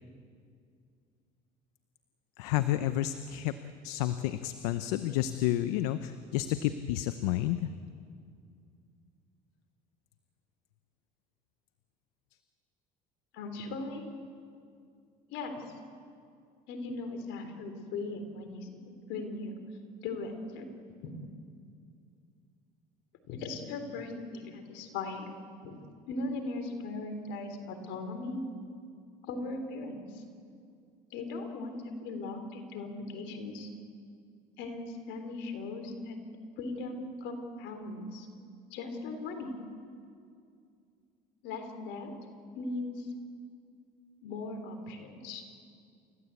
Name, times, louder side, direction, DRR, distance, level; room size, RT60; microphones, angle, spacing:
voice 1, 2.4-3.5 3.8-7.7, left 13 dB, 90° left, 11 dB, 0.8 m, -30 dB
voice 2, 13.3-14.1 15.3-15.6 16.7-19.5 20.0-20.7 21.0-21.1 23.3-25.4 25.6-25.8 26.1-28.4 29.3-30.2 31.1-33.7 34.6-36.2 36.6-38.3 38.7-39.5 41.4-42.1 42.5-43.1 44.2-45.4, left 3 dB, 75° left, 6 dB, 3.7 m, -38 dB
29.0 x 15.0 x 8.4 m, 2.3 s
supercardioid pair, 90°, 19 cm